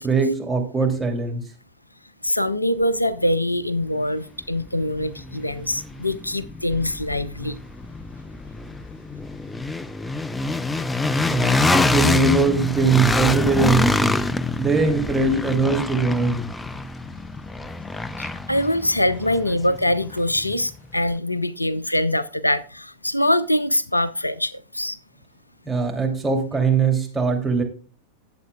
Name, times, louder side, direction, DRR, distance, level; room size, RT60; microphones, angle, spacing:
voice 1, 0.0-1.4 11.3-14.3 14.6-16.5 25.7-27.6, right 4 dB, 10° right, 2.9 m, -21 dB
voice 2, 2.2-7.6 18.2-25.0, left 1 dB, 85° left, 0.5 m, -23 dB
sound 1, 4.1-4.2 4.6-20.6, left 3 dB, 10° left, 0.6 m, -26 dB
18.5 x 7.8 x 2.3 m
figure-of-eight pair, 90°, 0 cm